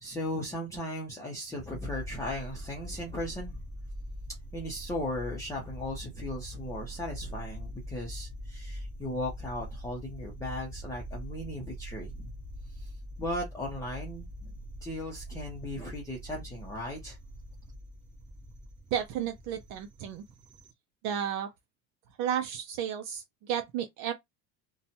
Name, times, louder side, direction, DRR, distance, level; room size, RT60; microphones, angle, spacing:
voice 1, 0.0-3.6 4.5-12.3 12.7-12.9 13.2-14.3 14.8-17.2, left 1 dB, 10° left, 0.7 m, -37 dB
sound 1, 1.5-20.7, equal, 20° right, 0.9 m, -43 dB
voice 2, 18.9-20.2 21.0-21.5 22.2-24.1, right 9 dB, 55° right, 0.5 m, -32 dB
2.7 x 2.3 x 2.7 m
cardioid pair, 145°, 35 cm